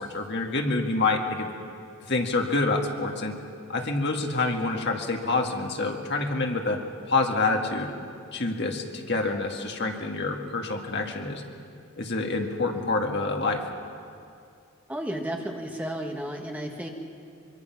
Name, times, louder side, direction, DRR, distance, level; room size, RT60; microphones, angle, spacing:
voice 1, 0.0-1.5 2.1-3.3 3.7-6.8 7.1-7.9 8.3-11.4 12.0-13.6, left 3 dB, 50° left, 2 dB, 2.0 m, -27 dB
voice 2, 14.9-16.9, right 1 dB, 5° right, 1 dB, 1.5 m, -33 dB
24.5 x 24.0 x 6.0 m, 2.4 s
head